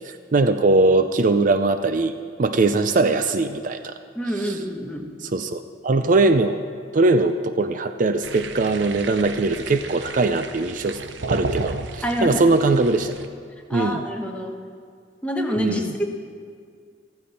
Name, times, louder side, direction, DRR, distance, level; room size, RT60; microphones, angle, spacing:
voice 1, 0.0-3.9 4.4-4.6 5.2-6.6 6.9-11.0 11.3-13.1 13.7-14.0 15.6-15.9, right 3 dB, 50° right, 10 dB, 0.5 m, -21 dB
voice 2, 4.1-5.1 12.0-12.4 13.7-14.6 15.2-16.1, equal, 5° left, 1 dB, 1.2 m, -26 dB
sound 1, 8.2-13.3, right 3 dB, 85° right, 0.7 m, -33 dB
14.5 x 14.5 x 4.3 m, 2.1 s
head